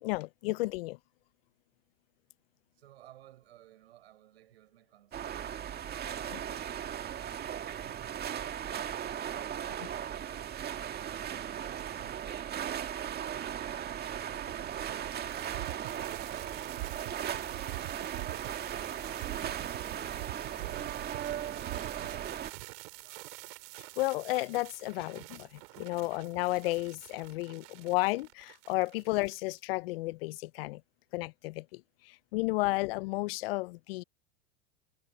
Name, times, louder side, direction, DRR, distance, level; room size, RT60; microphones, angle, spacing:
voice 1, 0.0-1.0 6.3-6.4 24.0-30.8 31.1-34.0, left 21 dB, 65° left, 0.7 m, -33 dB
voice 2, 2.8-5.6 5.9-8.5 15.7-16.9 18.8-20.2 20.8-23.3, right 13 dB, 80° right, 6.8 m, -60 dB
sound 1, 5.1-22.5, right 9 dB, 30° right, 1.9 m, -37 dB
sound 2, 14.3-29.6, right 27 dB, 65° right, 4.8 m, -45 dB
hypercardioid pair, 100°, 31 cm